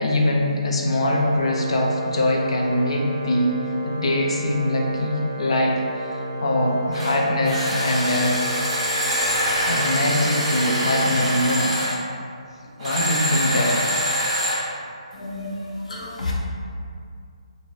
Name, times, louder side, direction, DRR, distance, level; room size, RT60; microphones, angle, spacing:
voice 1, 0.0-3.6 3.9-8.4 9.7-11.9 12.8-13.9, left 1 dB, 55° left, -1 dB, 0.4 m, -22 dB
Organ, 1.0-11.8, right 1 dB, 35° left, 0.8 m, -33 dB
sound 1, 6.9-7.1 7.4-12.0 12.8-14.6, equal, 10° right, 0.7 m, -24 dB
voice 2, 15.1-16.3, left 2 dB, 85° left, -3 dB, 0.7 m, -31 dB
2.6 x 2.5 x 3.1 m, 2.3 s
hypercardioid pair, 175°, 4 cm